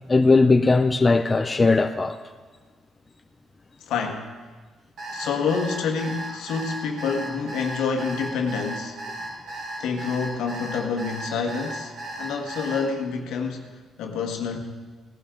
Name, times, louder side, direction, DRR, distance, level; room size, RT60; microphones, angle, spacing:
voice 1, 0.1-2.2, left 3 dB, 25° left, 0.6 m, -18 dB
voice 2, 3.9-4.3 5.1-9.0 9.8-11.9 12.2-13.7 14.0-14.6, left 5 dB, 85° left, 1.5 m, -27 dB
Alarm, 5.0-12.8, right 1 dB, 70° right, 4.8 m, -35 dB
18.0 x 11.5 x 3.8 m
cardioid pair, 90°, 0 cm